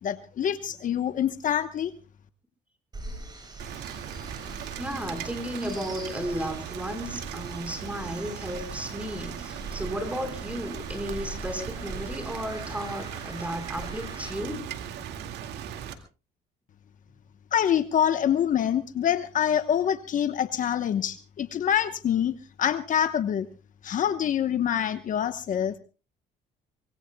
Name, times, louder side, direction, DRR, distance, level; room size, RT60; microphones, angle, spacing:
voice 1, 0.0-1.9 17.5-23.5 23.8-25.8, left 9 dB, 50° left, 10 dB, 1.1 m, -26 dB
sound 1, 2.9-14.3, right 2 dB, 25° right, 8.0 m, -42 dB
Rain, 3.6-15.9, right 9 dB, 80° right, 2.2 m, -38 dB
voice 2, 4.8-14.7, equal, 10° right, 7 dB, 4.7 m, -34 dB
24.5 x 21.5 x 2.3 m, 0.33 s
cardioid pair, 110°, 17 cm